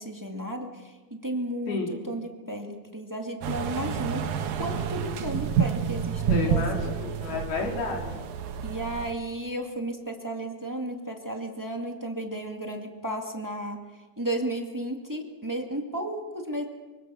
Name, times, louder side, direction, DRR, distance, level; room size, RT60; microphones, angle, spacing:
voice 1, 0.0-4.2 4.6-6.9 8.6-13.8 14.2-16.6, right 1 dB, 10° right, 2 dB, 0.8 m, -33 dB
voice 2, 1.7-2.0 6.3-8.2, left 3 dB, 80° left, 0 dB, 6.0 m, -31 dB
sound 1, 3.4-9.1, right 7 dB, 70° right, 2.9 m, -29 dB
25.0 x 25.0 x 6.4 m, 1.3 s
omnidirectional pair, 4.3 m